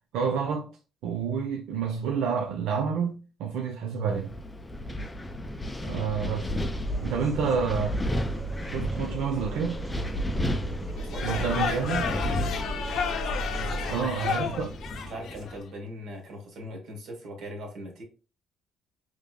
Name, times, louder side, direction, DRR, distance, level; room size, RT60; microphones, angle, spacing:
voice 1, 0.1-0.7 1.0-4.3 5.8-6.5 7.0-8.0 8.6-9.8 11.2-12.1 13.9-14.7, right 6 dB, 90° right, 0.5 m, -29 dB
Wind, 4.1-15.6, equal, 10° left, 0.3 m, -33 dB
sound 1, 6.8-13.9, right 1 dB, 10° right, 0.7 m, -36 dB
sound 2, 11.0-15.6, left 7 dB, 55° left, 0.6 m, -32 dB
voice 2, 11.0-11.6 12.0-12.6 13.5-14.5 15.0-18.0, equal, 60° right, 1.5 m, -40 dB
5.1 x 3.2 x 2.2 m
cardioid pair, 170°, 0 cm